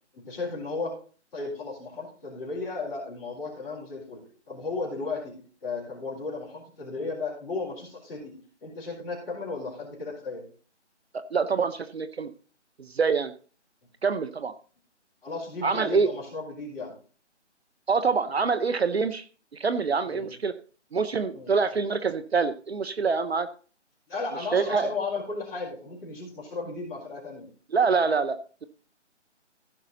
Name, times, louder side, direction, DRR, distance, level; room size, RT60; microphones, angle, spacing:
voice 1, 0.1-0.9 1.3-8.3 8.6-10.4 15.2-16.9 20.0-20.3 21.3-21.5 24.1-27.5, left 3 dB, 10° left, -8 dB, 3.9 m, -35 dB
voice 2, 11.1-12.3 12.8-13.3 14.0-14.5 15.6-16.1 17.9-19.2 19.5-20.5 20.9-23.5 24.5-24.9 27.7-28.6, right 5 dB, 60° right, 11 dB, 0.8 m, -25 dB
15.5 x 5.5 x 4.0 m, 0.39 s
hypercardioid pair, 170°, 36 cm